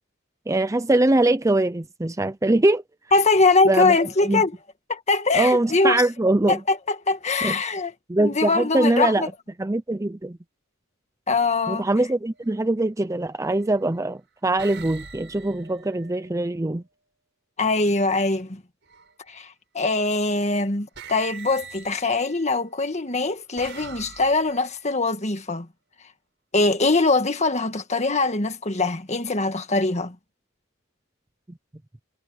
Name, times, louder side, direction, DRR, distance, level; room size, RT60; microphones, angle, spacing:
voice 1, 0.5-2.8 3.7-3.9 4.3-4.4 5.3-6.6 7.4-7.6 8.1-9.3 9.6-10.4 11.7-16.8, right 2 dB, 15° right, 0.5 m, -22 dB
voice 2, 3.1-4.6 4.9-6.1 6.5-7.9 8.2-9.3 11.3-12.1 17.6-18.6 19.3-25.7 26.5-30.2, left 3 dB, 35° left, 1.8 m, -22 dB
sound 1, 12.3-12.6 13.5-14.0 14.6-16.6 18.8-19.4 20.4-20.6 21.0-22.6 23.2-24.9, right 5 dB, 60° right, 6.1 m, -43 dB
head